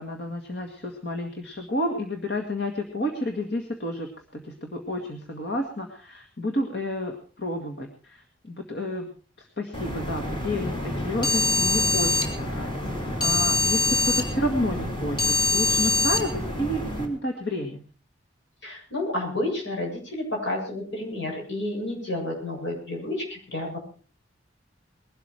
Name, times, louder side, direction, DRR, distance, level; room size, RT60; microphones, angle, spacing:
voice 1, 0.0-9.1 9.4-12.8 13.2-17.8, left 1 dB, 60° left, 4 dB, 2.0 m, -31 dB
sound 1, 9.7-17.1, left 2 dB, 25° left, 3.1 m, -25 dB
voice 2, 18.6-23.8, left 1 dB, 80° left, 0 dB, 7.9 m, -30 dB
21.0 x 12.5 x 4.7 m, 0.40 s
head